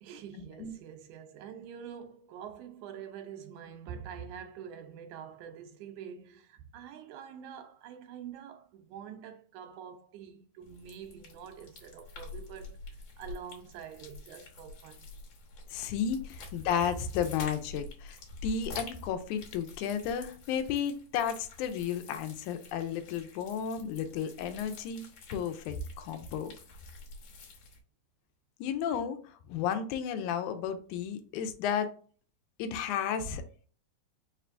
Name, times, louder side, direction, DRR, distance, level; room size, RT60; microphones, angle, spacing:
voice 1, 0.0-15.1, right 8 dB, 80° right, 2.0 m, -46 dB
sound 1, 10.6-27.8, left 3 dB, 60° left, 2.0 m, -48 dB
voice 2, 15.7-18.2 18.4-25.0 25.3-26.5 28.6-31.9 32.6-33.7, left 7 dB, 85° left, 2.0 m, -33 dB
5.0 x 3.3 x 2.5 m
omnidirectional pair, 3.5 m